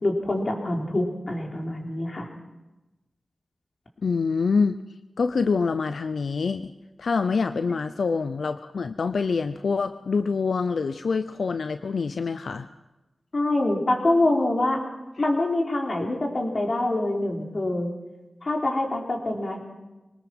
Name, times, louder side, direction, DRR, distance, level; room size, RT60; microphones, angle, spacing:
voice 1, 0.0-2.3 13.3-14.8 15.2-17.9 18.4-19.6, left 2 dB, 50° left, 1 dB, 4.0 m, -25 dB
voice 2, 4.0-4.8 5.2-6.7 7.0-12.7, left 4 dB, 90° left, 11 dB, 0.6 m, -25 dB
23.5 x 19.5 x 6.1 m, 1.1 s
wide cardioid pair, 75°, 0 cm